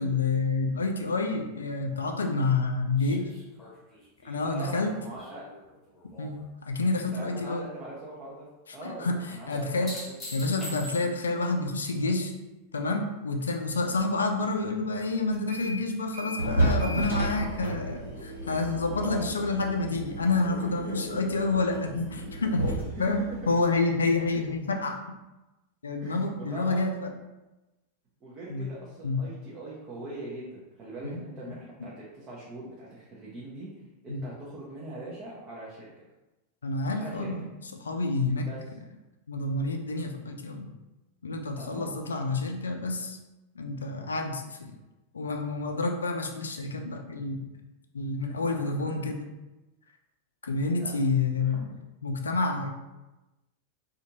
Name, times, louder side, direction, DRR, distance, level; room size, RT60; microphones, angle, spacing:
voice 1, 0.0-3.3 4.2-4.9 6.2-7.7 8.8-9.2 9.5-9.9 10.3-12.3 12.7-22.7 23.0-23.2 23.5-25.0 25.8-27.1 28.5-28.7 29.0-29.2 31.0-31.2 34.1-34.2 36.6-37.4 37.8-38.5 39.3-40.7 41.2-43.2 43.6-44.7 45.1-47.4 47.9-49.3 50.4-51.6 52.0-52.7, left 3 dB, 70° left, 3 dB, 0.3 m, -28 dB
sound 1, 3.0-6.4 6.8-7.4 9.5-11.4 14.0-14.1, left 1 dB, 20° left, 1.1 m, -44 dB
voice 2, 4.4-5.4 7.1-10.1 19.0-19.3 20.5-21.2 22.7-22.8 23.1-23.2 26.0-26.8 28.2-36.0 37.0-37.3 38.4-38.7 41.6-42.2 48.3-49.1 50.7-51.1 51.4-51.8, right 2 dB, 30° right, -6 dB, 0.6 m, -42 dB
sound 2, 15.3-15.8 16.1-24.6, right 1 dB, 80° right, 1.1 m, -32 dB
2.5 x 2.4 x 2.9 m, 1.0 s
figure-of-eight pair, 90°, 0 cm